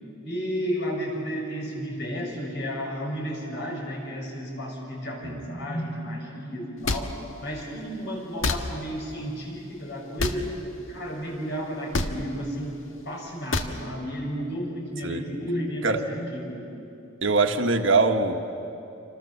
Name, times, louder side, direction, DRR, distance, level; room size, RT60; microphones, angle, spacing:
voice 1, 0.2-10.5 10.9-12.8 13.0-16.6, equal, 60° left, -1 dB, 6.8 m, -32 dB
sound 1, 6.8-7.0 8.4-8.6 10.2-10.4 11.9-12.1 13.5-13.7, left 3 dB, 80° left, 1.5 m, -25 dB
voice 2, 17.2-18.5, right 3 dB, 70° right, 5 dB, 1.6 m, -22 dB
28.0 x 26.0 x 7.3 m, 2.9 s
head